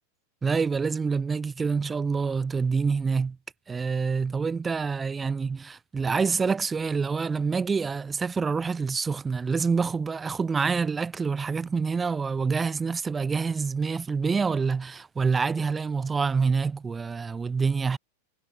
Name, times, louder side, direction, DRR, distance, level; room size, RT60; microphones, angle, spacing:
voice 1, 0.4-3.4 3.7-18.0, right 5 dB, 15° right, 2.0 m, -27 dB
figure-of-eight pair, 90°, 0 cm